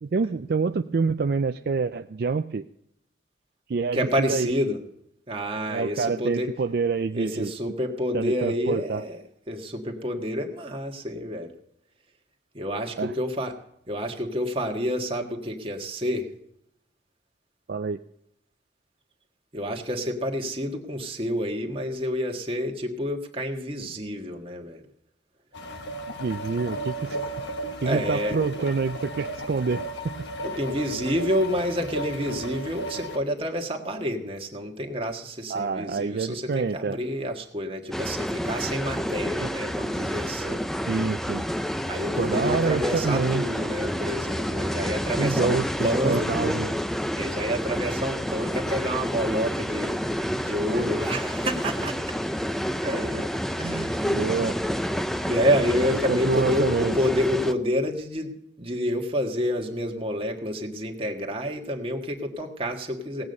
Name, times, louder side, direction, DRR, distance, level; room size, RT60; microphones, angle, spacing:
voice 1, 0.0-2.6 3.7-4.5 5.7-7.5 8.1-9.0 13.0-13.1 17.7-18.0 26.2-27.2 27.8-30.1 35.5-37.0 39.0-39.1 39.4-39.5 40.4-41.5 42.2-43.4 45.2-45.7 46.0-46.7 50.7-50.8 53.6-54.6 55.9-57.0, right 4 dB, 55° right, 8 dB, 0.4 m, -27 dB
voice 2, 3.9-4.8 5.3-6.5 7.1-9.2 9.5-11.5 12.5-13.5 13.9-16.3 19.5-24.8 27.8-28.4 30.4-40.6 41.9-46.6 47.2-49.9 50.4-52.0 52.8-53.3 53.6-54.4 55.2-58.3 58.6-63.2, equal, 30° right, 2 dB, 1.6 m, -28 dB
sound 1, 25.5-33.2, right 1 dB, 70° left, 1.3 m, -35 dB
sound 2, 37.9-57.5, equal, ahead, 0.4 m, -29 dB
17.5 x 8.7 x 5.4 m, 0.77 s
head